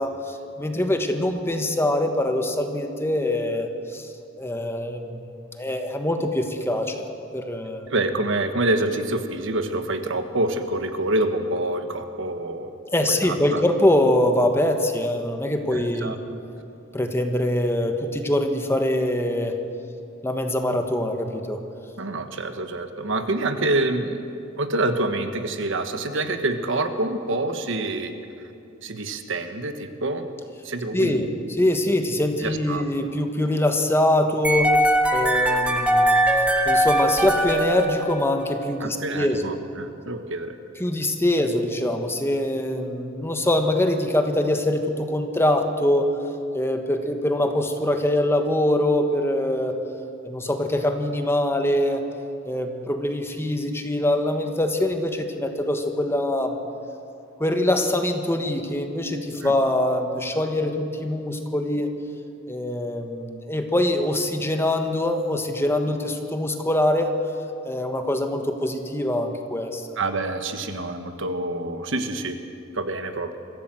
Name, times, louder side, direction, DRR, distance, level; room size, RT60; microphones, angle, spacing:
voice 1, 0.0-4.1 4.4-5.3 5.6-6.9 7.3-7.9 12.9-16.2 16.9-19.5 20.2-21.6 30.9-34.9 35.1-39.4 40.8-46.1 46.5-49.8 50.2-52.0 52.4-56.6 57.4-61.9 62.5-67.2 67.7-69.9, left 1 dB, 10° left, 5 dB, 1.3 m, -23 dB
voice 2, 7.9-12.7 13.1-13.6 15.7-16.2 22.0-24.2 24.6-28.1 28.8-30.3 30.6-31.2 32.4-32.8 38.8-40.5 59.4-59.5 70.0-72.4 72.7-73.4, right 2 dB, 65° right, 8 dB, 1.4 m, -26 dB
sound 1, 34.4-38.6, right 1 dB, 5° right, 1.3 m, -21 dB
23.5 x 15.0 x 7.7 m, 2.6 s
head